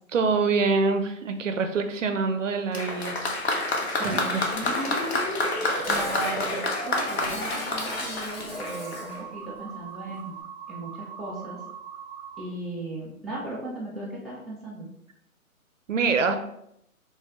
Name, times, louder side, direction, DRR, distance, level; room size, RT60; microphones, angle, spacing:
voice 1, 0.1-3.4 3.7-4.4 4.7-4.9 15.9-16.4, right 4 dB, 60° right, 7 dB, 0.5 m, -26 dB
Applause, 2.7-9.2 10.1-10.2, left 2 dB, 50° left, 0.6 m, -29 dB
voice 2, 4.0-4.5 5.9-10.4 10.7-11.6 12.4-14.9, right 2 dB, ahead, -8 dB, 0.3 m, -36 dB
sound 1, 4.5-12.4, right 2 dB, 15° right, 0.8 m, -38 dB
Dishes pots and pans, 5.4-9.2, left 1 dB, 65° left, 1.3 m, -37 dB
3.4 x 3.0 x 2.8 m, 0.76 s
hypercardioid pair, 160°, 43 cm